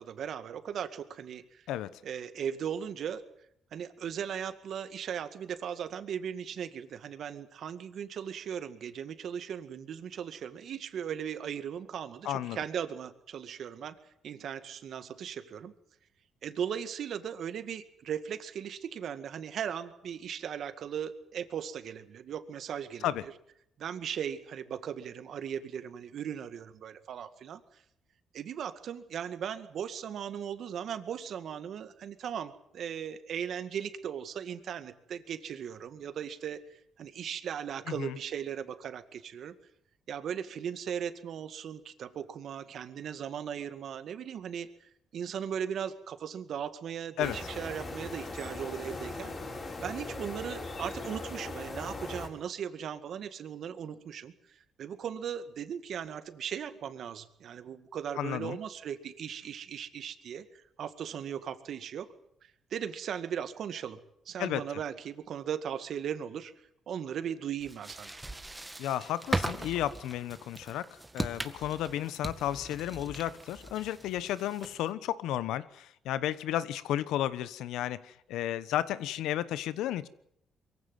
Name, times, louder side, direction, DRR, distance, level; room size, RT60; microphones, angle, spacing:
voice 1, 0.0-1.6 2.0-3.2 3.7-14.0 14.2-15.7 16.4-23.3 23.8-27.6 28.3-39.5 40.1-44.7 45.1-49.3 49.8-54.3 54.8-60.5 60.8-62.1 62.7-64.0 64.3-66.5 66.9-68.1, right 8 dB, 65° right, 11 dB, 2.1 m, -38 dB
voice 2, 12.2-12.6 23.0-23.2 37.9-38.2 47.2-47.4 58.2-58.6 64.4-64.6 68.8-80.1, left 12 dB, 90° left, 16 dB, 1.1 m, -33 dB
sound 1, 47.2-52.3, left 2 dB, 40° left, 6.4 m, -39 dB
sound 2, 67.6-74.9, right 2 dB, 15° right, 1.9 m, -39 dB
23.0 x 15.5 x 9.5 m, 0.73 s
cardioid pair, 90°, 0 cm